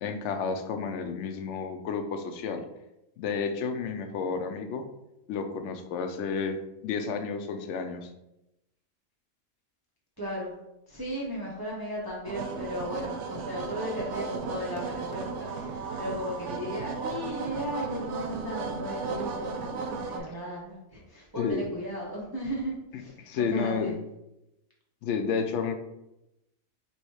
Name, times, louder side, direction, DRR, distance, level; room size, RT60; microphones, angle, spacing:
voice 1, 0.0-2.6 3.2-4.9 5.3-8.1 21.4-21.7 23.2-24.0 25.0-25.8, left 5 dB, 65° left, 6 dB, 0.8 m, -31 dB
voice 2, 10.2-10.5 10.9-23.9, equal, 25° right, -5 dB, 0.5 m, -36 dB
sound 1, 12.3-20.2, right 4 dB, 65° right, 0.8 m, -35 dB
3.1 x 2.9 x 4.6 m, 0.89 s
omnidirectional pair, 1.5 m